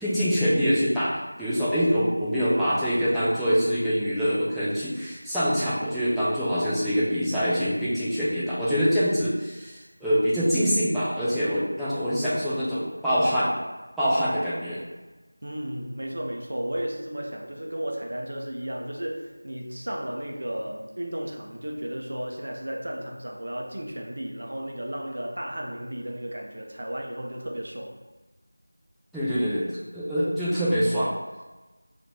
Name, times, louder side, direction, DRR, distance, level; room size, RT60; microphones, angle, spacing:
voice 1, 0.0-13.5 14.0-14.8 29.1-29.7 29.9-31.1, equal, ahead, -15 dB, 0.4 m, -24 dB
voice 2, 15.4-27.9, right 1 dB, 50° right, 0 dB, 0.6 m, -34 dB
4.4 x 2.6 x 2.6 m, 1.2 s
figure-of-eight pair, 175°, 0 cm